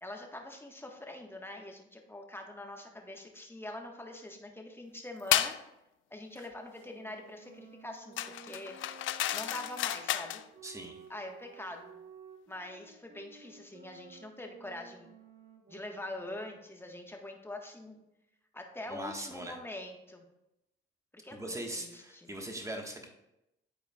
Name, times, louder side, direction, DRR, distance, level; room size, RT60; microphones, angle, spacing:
voice 1, 0.0-5.5 6.1-8.2 8.4-8.8 9.3-10.4 11.1-11.9 12.5-15.1 15.7-18.0 18.5-20.2 21.1-22.3, left 1 dB, 10° left, 2 dB, 1.3 m, -44 dB
sound 1, 5.3-5.6 8.2-10.4, left 13 dB, 70° left, 0.4 m, -32 dB
sound 2, 6.8-16.7, right 6 dB, 65° right, 1.1 m, -55 dB
voice 2, 10.6-11.0 18.9-19.6 21.3-23.1, right 1 dB, 15° right, 2 dB, 1.4 m, -40 dB
11.5 x 4.4 x 2.3 m, 0.88 s
supercardioid pair, 65°, 21 cm